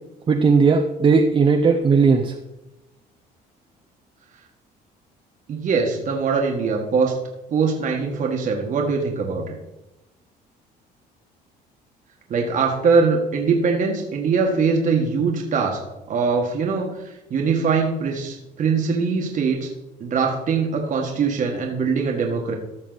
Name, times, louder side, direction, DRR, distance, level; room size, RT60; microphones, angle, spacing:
voice 1, 0.3-2.3, right 5 dB, 30° right, 4 dB, 0.8 m, -17 dB
voice 2, 5.5-7.1 7.5-9.6 12.3-15.8 16.1-16.9 17.3-19.7 20.0-22.6, right 5 dB, 50° right, 0 dB, 1.6 m, -22 dB
14.5 x 6.0 x 4.0 m, 0.96 s
cardioid pair, 110°, 17 cm